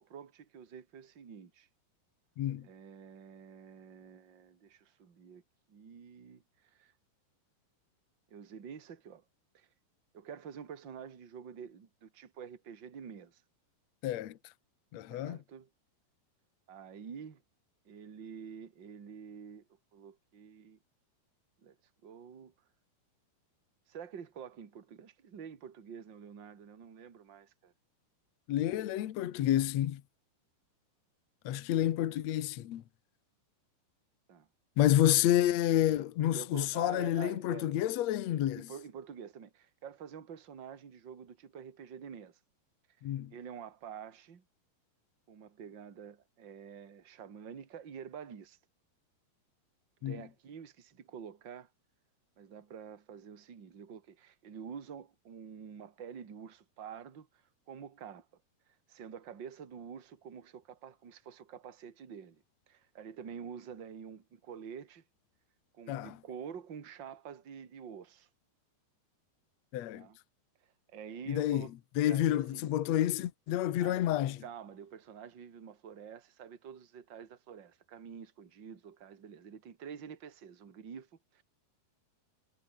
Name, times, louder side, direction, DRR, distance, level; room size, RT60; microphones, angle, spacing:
voice 1, 0.0-1.7 2.6-5.4 5.7-6.9 8.3-9.2 9.5-9.7 10.1-13.4 15.1-15.7 16.7-17.4 17.8-20.8 21.6-21.8 22.0-22.5 23.9-27.7 34.3-34.5 36.2-37.7 38.6-42.4 43.3-44.4 45.3-48.6 50.0-51.7 52.4-57.3 57.7-58.3 58.9-65.0 65.7-68.3 69.9-70.2 70.9-71.7 72.1-72.6 73.8-74.0 74.4-81.4, right 7 dB, 30° right, 2.4 m, -48 dB
voice 2, 2.4-2.7 14.0-14.4 14.9-15.4 28.5-30.0 31.4-32.8 34.8-38.7 43.0-43.3 50.0-50.2 65.9-66.2 69.7-70.1 71.3-71.7 72.0-74.4, left 12 dB, 85° left, 1.5 m, -29 dB
omnidirectional pair, 5.1 m